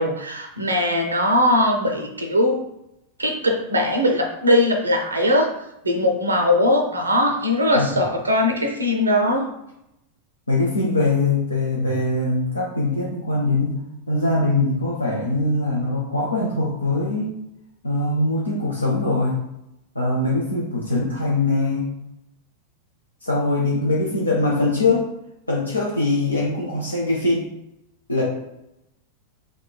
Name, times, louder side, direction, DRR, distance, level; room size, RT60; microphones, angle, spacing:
voice 1, 0.0-2.6 3.2-5.5 5.8-9.5, left 1 dB, 80° right, 3 dB, 0.4 m, -20 dB
voice 2, 10.5-13.7 14.1-17.4 17.8-19.4 20.0-21.9 23.2-25.1 25.5-27.4 28.1-28.2, left 2 dB, 80° left, -4 dB, 0.6 m, -22 dB
3.7 x 3.2 x 2.2 m, 0.85 s
figure-of-eight pair, 90°, 0 cm